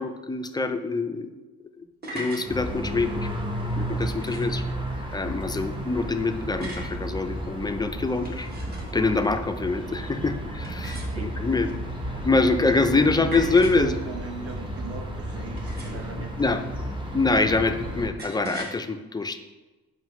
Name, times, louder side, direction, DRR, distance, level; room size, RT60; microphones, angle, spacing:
voice 1, 0.0-1.4 2.1-3.3 3.8-4.6 5.1-8.5 8.9-11.7 12.2-13.9 16.4-16.6 17.1-19.4, left 3 dB, 15° left, 7 dB, 0.3 m, -25 dB
sound 1, 1.8-2.5 4.0-4.6 6.6-7.0 8.1-9.1 10.6-11.5 13.3-13.9 15.6-16.1 18.2-18.8, right 1 dB, 35° right, 1.2 m, -38 dB
sound 2, 2.5-18.1, equal, 15° right, 0.9 m, -33 dB
voice 2, 12.7-16.6, right 6 dB, 50° right, 5 dB, 0.8 m, -38 dB
7.5 x 5.4 x 3.0 m, 1.2 s
cardioid pair, 150°, 30 cm